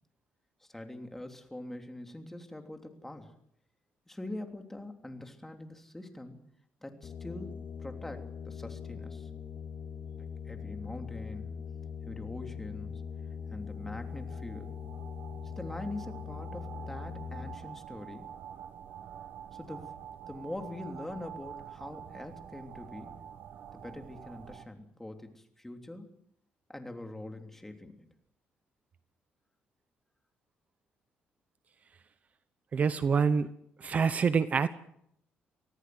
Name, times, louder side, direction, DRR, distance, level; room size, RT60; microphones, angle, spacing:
voice 1, 0.6-3.3 4.1-6.4 6.8-9.3 10.4-11.6 12.1-13.0 13.5-14.7 15.6-18.3 19.5-19.9 20.3-23.2 23.7-26.1 26.7-28.1, left 1 dB, 10° left, 5 dB, 3.3 m, -43 dB
sound 1, 7.0-17.6, left 7 dB, 50° left, 2.1 m, -41 dB
sound 2, 13.6-24.7, right 9 dB, 65° right, 1.6 m, -47 dB
voice 2, 32.7-33.5 33.8-34.7, right 6 dB, 40° right, 13 dB, 1.0 m, -26 dB
25.0 x 17.5 x 7.9 m, 0.71 s
cardioid pair, 110°, 4 cm